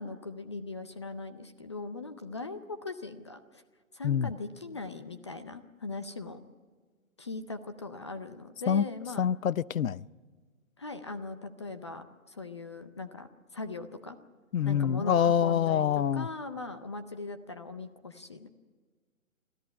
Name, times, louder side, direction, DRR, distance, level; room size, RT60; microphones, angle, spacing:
voice 1, 0.0-3.6 3.9-6.4 7.2-9.3 10.8-14.2 14.6-18.5, left 3 dB, 20° left, 0.5 m, -40 dB
voice 2, 9.2-10.1 14.5-16.3, left 8 dB, 75° left, 0.7 m, -26 dB
24.5 x 14.5 x 9.6 m
hypercardioid pair, 155°, 41 cm